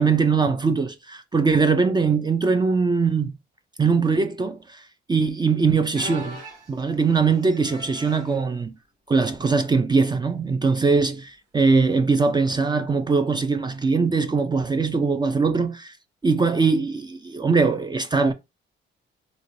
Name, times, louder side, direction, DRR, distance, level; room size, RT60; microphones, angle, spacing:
voice 1, 0.0-3.3 3.8-4.8 5.1-6.4 6.7-8.7 9.1-15.9 16.2-18.3, right 4 dB, 20° right, 0.4 m, -21 dB
sound 1, 5.9-8.4 9.2-9.4 9.8-9.9 10.8-11.0 12.6-12.7, equal, 40° right, 2.0 m, -41 dB
3.8 x 2.1 x 3.0 m
cardioid pair, 90°, 20 cm